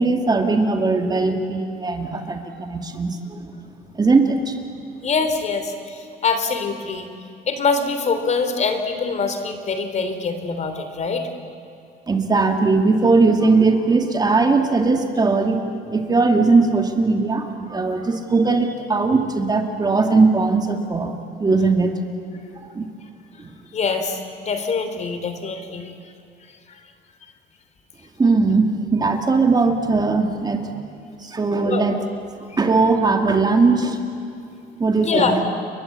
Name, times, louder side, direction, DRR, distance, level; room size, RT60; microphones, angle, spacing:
voice 1, 0.0-3.5 3.9-4.6 12.1-15.6 15.9-21.1 21.4-21.9 22.5-22.9 23.4-23.5 28.2-30.8 31.2-32.0 32.6-34.0 34.8-35.3, right 3 dB, 25° right, 4 dB, 2.4 m, -19 dB
voice 2, 5.0-7.1 7.5-11.3 23.7-25.9 26.7-26.8 31.6-31.8 35.1-35.3, left 4 dB, 45° left, 8 dB, 3.3 m, -24 dB
29.5 x 22.5 x 8.5 m, 2.5 s
cardioid pair, 110°, 17 cm